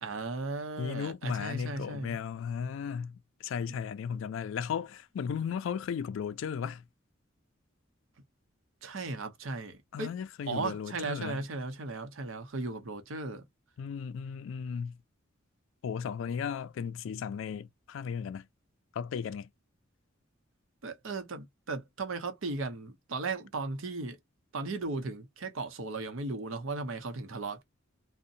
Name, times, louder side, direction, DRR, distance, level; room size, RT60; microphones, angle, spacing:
voice 1, 0.0-2.2 8.8-10.1 10.5-13.4 20.8-24.2 24.5-27.6, right 3 dB, 85° right, 0.7 m, -36 dB
voice 2, 0.8-6.9 9.9-11.4 13.8-15.0 15.8-18.5 18.9-19.5, left 7 dB, 70° left, 0.3 m, -35 dB
2.7 x 2.1 x 2.5 m
head